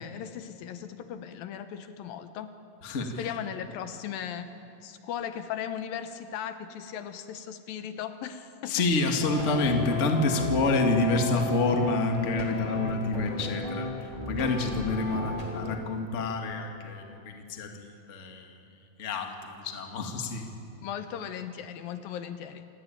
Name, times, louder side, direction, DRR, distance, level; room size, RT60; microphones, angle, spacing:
voice 1, 0.0-2.6 3.0-4.5 4.8-8.8 20.8-22.7, left 9 dB, 75° left, 9 dB, 2.6 m, -37 dB
voice 2, 2.8-3.3 8.6-18.5 19.0-20.5, left 3 dB, 30° left, 3 dB, 1.5 m, -28 dB
sound 1, 9.2-15.7, left 3 dB, 10° left, 2.1 m, -34 dB
27.5 x 17.5 x 9.1 m, 2.7 s
omnidirectional pair, 4.3 m